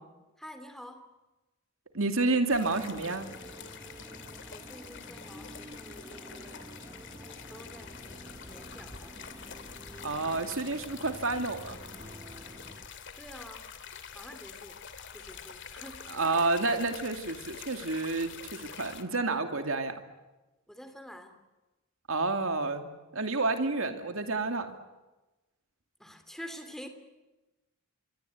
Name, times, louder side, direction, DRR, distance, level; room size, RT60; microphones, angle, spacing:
voice 1, 0.4-1.1 4.5-6.7 7.4-9.4 13.1-13.7 14.1-14.8 15.1-16.0 20.7-21.4 26.0-26.9, equal, ahead, 7 dB, 2.8 m, -48 dB
voice 2, 1.9-3.3 10.0-11.8 16.1-20.0 22.1-24.8, right 3 dB, 65° right, 6 dB, 2.6 m, -30 dB
sound 1, 2.5-19.0, left 7 dB, 55° left, 2.5 m, -46 dB
sound 2, 2.6-12.8, right 1 dB, 15° right, 1.4 m, -49 dB
26.5 x 24.0 x 9.4 m, 1.1 s
head